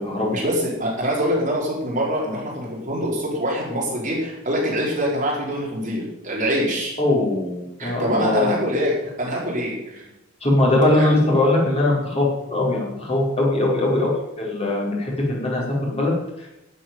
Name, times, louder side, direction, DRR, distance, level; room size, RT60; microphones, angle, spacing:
voice 1, 0.3-7.0 7.8-10.1 10.9-11.1, equal, 40° right, -4 dB, 4.8 m, -24 dB
voice 2, 7.0-8.5 10.4-16.1 16.4-16.5, left 2 dB, 30° left, -4 dB, 5.0 m, -21 dB
12.5 x 7.6 x 9.5 m, 0.91 s
head